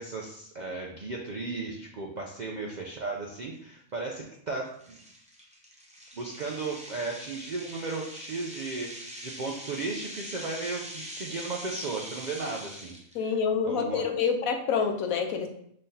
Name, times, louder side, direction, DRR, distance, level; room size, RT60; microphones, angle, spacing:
voice 1, 0.0-5.0 6.1-13.0 13.6-14.0, right 3 dB, 65° right, -1 dB, 0.4 m, -35 dB
sound 1, 2.9-3.0 3.5-3.7 4.2-4.3 4.8-13.1, equal, 10° right, 0.5 m, -43 dB
voice 2, 13.1-15.5, left 6 dB, 85° left, 6 dB, 1.1 m, -27 dB
5.6 x 3.2 x 2.7 m, 0.69 s
omnidirectional pair, 1.4 m